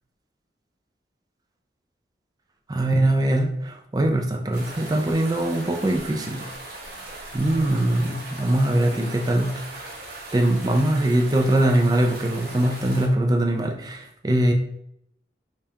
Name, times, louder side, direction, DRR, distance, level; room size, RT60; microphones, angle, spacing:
voice 1, 2.7-6.5 7.3-9.8 10.3-14.5, right 1 dB, 20° right, 3 dB, 0.4 m, -22 dB
sound 1, 4.5-13.1, right 2 dB, 55° right, 1.0 m, -39 dB
5.1 x 2.4 x 2.8 m, 0.76 s
head